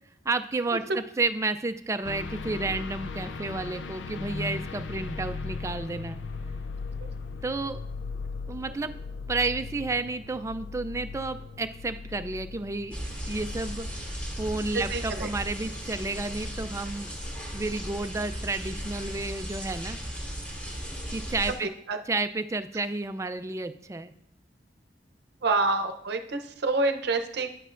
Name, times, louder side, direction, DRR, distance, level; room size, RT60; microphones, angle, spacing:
voice 1, 0.2-6.2 7.4-7.8 8.5-9.0 9.3-13.0 13.3-17.1 17.5-20.0 21.1-21.7 22.1-24.1, right 3 dB, 15° right, 10 dB, 0.3 m, -31 dB
sound 1, 2.0-18.2 18.7-19.5, left 4 dB, 85° left, 0.4 m, -39 dB
sound 2, 12.9-21.6, equal, 10° left, 2.0 m, -36 dB
voice 2, 14.7-15.3 21.5-22.0 25.4-27.5, right 3 dB, 65° right, 6 dB, 0.7 m, -28 dB
9.9 x 7.8 x 2.5 m, 0.73 s
head